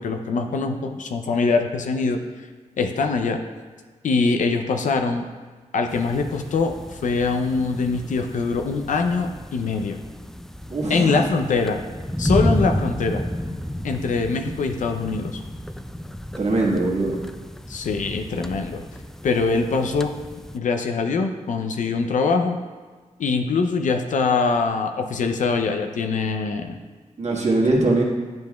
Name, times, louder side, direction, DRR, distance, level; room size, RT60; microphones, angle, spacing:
voice 1, 0.0-2.2 2.8-3.4 4.0-5.2 5.7-10.0 10.9-11.8 12.2-13.2 13.8-15.4 17.7-18.8 19.2-20.1 20.5-22.6 23.2-26.8, left 4 dB, 75° left, 5 dB, 0.5 m, -23 dB
sound 1, 5.9-20.6, equal, 5° left, 0.3 m, -31 dB
voice 2, 10.7-11.3 16.4-17.2 27.2-28.0, right 2 dB, 60° right, -3 dB, 1.5 m, -21 dB
9.1 x 5.2 x 2.3 m, 1.4 s
cardioid pair, 65°, 13 cm